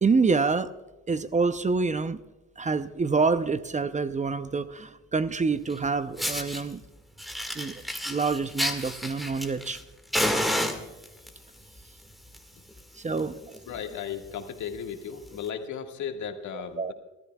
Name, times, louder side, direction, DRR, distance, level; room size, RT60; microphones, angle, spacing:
voice 1, 0.0-0.7 1.1-2.2 2.6-6.8 7.5-9.8 12.9-13.4 16.5-16.9, right 4 dB, 25° right, 12 dB, 0.6 m, -27 dB
Fire, 5.7-5.8 6.2-6.6 7.2-9.8 10.1-11.3 12.1-12.4 12.7-12.8 13.2-13.3 13.5-13.8 14.3-14.4 15.3-15.4, equal, ahead, 1.9 m, -29 dB
voice 2, 13.3-16.9, left 7 dB, 75° left, 4 dB, 1.8 m, -36 dB
29.0 x 13.5 x 2.3 m, 1.1 s
cardioid pair, 90°, 30 cm